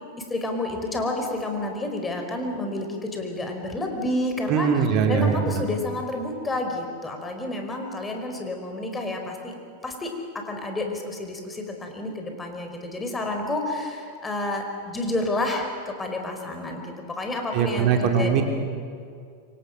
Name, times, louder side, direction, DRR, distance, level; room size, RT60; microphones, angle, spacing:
voice 1, 0.3-4.7 5.1-9.5 9.8-10.1 10.5-18.4, left 2 dB, 15° left, 3 dB, 4.8 m, -30 dB
voice 2, 4.5-5.6 17.5-18.4, right 7 dB, 45° right, 4 dB, 3.0 m, -21 dB
27.0 x 24.5 x 6.6 m, 2.3 s
figure-of-eight pair, 90°, 0 cm